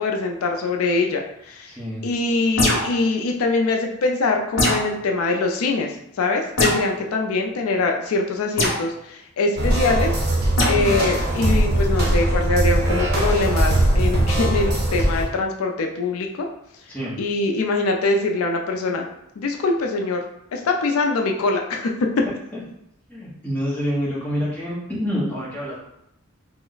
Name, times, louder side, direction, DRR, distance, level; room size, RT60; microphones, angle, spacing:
voice 1, 0.0-1.7 2.0-10.1 10.6-16.5 17.2-19.1 19.4-20.2 20.5-21.9, left 3 dB, 80° left, 3 dB, 0.4 m, -23 dB
voice 2, 1.7-2.1 10.6-11.0 16.9-17.2 22.5-22.6 23.1-25.8, equal, 5° left, -7 dB, 0.8 m, -27 dB
sound 1, 2.6-3.0 4.6-4.9 6.6-6.9 8.6-8.8 10.6-10.8, left 1 dB, 65° left, 0.9 m, -21 dB
sound 2, 9.6-15.2, right 1 dB, 45° right, 0.8 m, -20 dB
3.1 x 2.1 x 3.8 m, 0.80 s
head